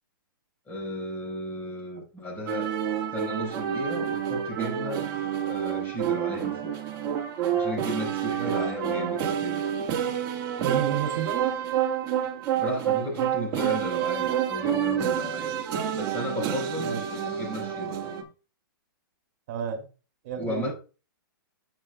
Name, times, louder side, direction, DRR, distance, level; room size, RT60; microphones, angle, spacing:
voice 1, 0.7-2.8 3.1-5.1 5.4-6.7 7.5-9.6 12.6-15.6 16.0-18.0 20.4-20.7, left 1 dB, 15° left, 4.8 m, -34 dB
sound 1, 2.5-18.2, right 9 dB, 30° right, 1.7 m, -28 dB
voice 2, 10.6-11.4 16.8-17.0 19.5-19.9 20.2-20.7, right 7 dB, 50° right, 2.7 m, -31 dB
10.0 x 7.7 x 2.3 m
hypercardioid pair, 145°, 12 cm